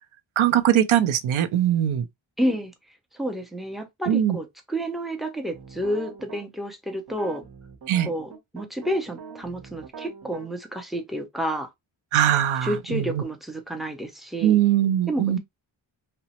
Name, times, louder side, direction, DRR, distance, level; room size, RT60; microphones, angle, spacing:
voice 1, 0.4-2.0 4.1-4.4 7.9-8.1 12.1-13.2 14.4-15.4, right 11 dB, 80° right, 0.6 m, -21 dB
voice 2, 2.4-2.7 3.1-7.4 8.0-11.7 12.6-14.6 15.1-15.4, equal, ahead, 0.4 m, -30 dB
sound 1, 5.5-6.4 7.1-10.5, right 6 dB, 55° right, 0.8 m, -42 dB
2.9 x 2.0 x 2.7 m
wide cardioid pair, 165°, 48 cm